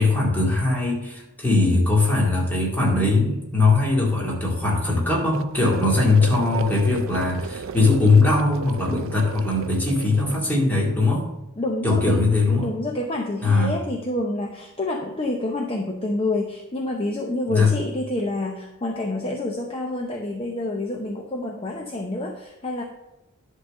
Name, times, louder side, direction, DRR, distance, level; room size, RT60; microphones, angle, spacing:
voice 1, 0.0-11.3 11.8-12.7 13.4-13.7 17.5-17.7, left 3 dB, 10° left, -3 dB, 2.1 m, -20 dB
sound 1, 5.3-10.4, right 5 dB, 60° right, 0.4 m, -35 dB
voice 2, 11.6-12.2 12.6-22.8, left 2 dB, 25° left, 2 dB, 0.6 m, -28 dB
10.5 x 3.8 x 6.5 m, 0.94 s
head